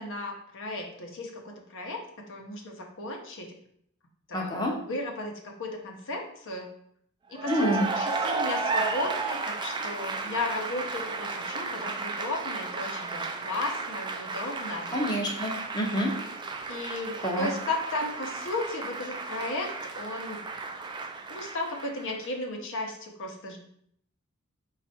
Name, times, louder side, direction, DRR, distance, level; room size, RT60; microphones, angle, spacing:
voice 1, 0.0-2.0 2.3-3.5 4.3-6.7 7.3-14.9 16.7-19.7 20.0-20.5 21.3-23.6, left 2 dB, 60° left, 2 dB, 0.7 m, -35 dB
voice 2, 4.3-4.7 7.5-7.9 14.9-16.1 17.2-17.5, equal, 20° left, -2 dB, 0.6 m, -27 dB
Cheering / Applause, 7.3-22.3, right 3 dB, 20° right, 0.3 m, -33 dB
4.3 x 2.4 x 4.1 m, 0.68 s
head